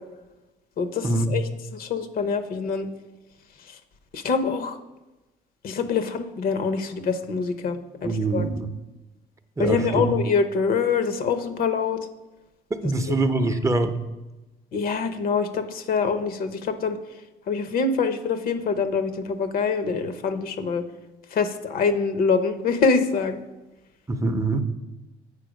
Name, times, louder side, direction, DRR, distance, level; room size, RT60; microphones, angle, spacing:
voice 1, 0.8-2.9 3.7-3.8 4.1-4.8 5.6-8.5 9.6-12.0 12.8-13.2 14.7-17.0 17.5-20.8 21.3-23.4, left 5 dB, 60° left, 9 dB, 0.8 m, -25 dB
voice 2, 8.0-8.7 9.6-10.1 12.7-14.0 24.1-24.6, right 2 dB, 20° right, 8 dB, 0.6 m, -24 dB
8.4 x 4.3 x 5.1 m, 1.1 s
supercardioid pair, 70°, 17 cm